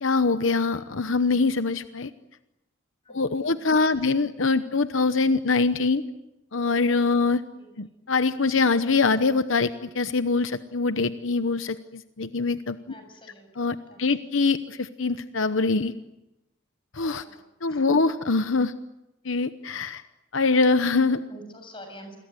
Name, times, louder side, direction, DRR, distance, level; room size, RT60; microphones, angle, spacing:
voice 1, 0.0-2.1 3.1-6.0 6.5-7.4 7.8-12.8 13.6-15.9 16.9-17.2 17.6-18.7 19.2-20.0 20.3-21.2, left 4 dB, 75° left, 11 dB, 0.9 m, -23 dB
voice 2, 12.9-13.5 13.9-14.0 17.2-17.4 17.7-17.8 21.3-22.2, equal, 25° left, 6 dB, 7.2 m, -46 dB
28.0 x 22.0 x 9.5 m, 0.95 s
head